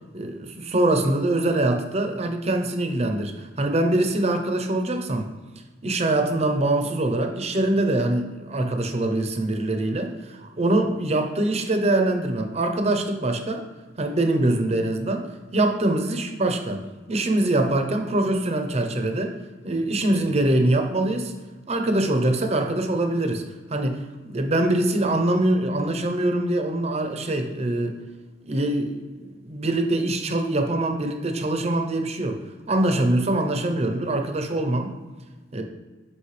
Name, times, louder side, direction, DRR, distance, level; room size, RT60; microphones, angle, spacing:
voice 1, 0.1-5.3 5.8-13.6 14.0-16.8 17.1-19.4 19.6-21.3 21.7-23.4 23.7-28.0 28.4-32.4 32.7-34.9 35.5-35.6, right 1 dB, 35° right, 5 dB, 0.7 m, -23 dB
8.2 x 5.3 x 3.3 m, 1.3 s
head